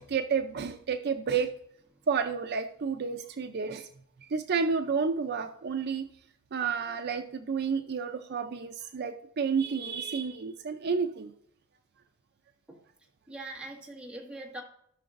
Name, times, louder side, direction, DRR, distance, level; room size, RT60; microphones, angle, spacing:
voice 1, 0.0-1.5 2.1-3.9 4.3-6.1 6.5-11.3, right 5 dB, 50° right, 7 dB, 0.5 m, -30 dB
voice 2, 13.3-14.6, right 2 dB, 5° right, -3 dB, 1.7 m, -42 dB
16.5 x 5.8 x 2.5 m, 0.72 s
head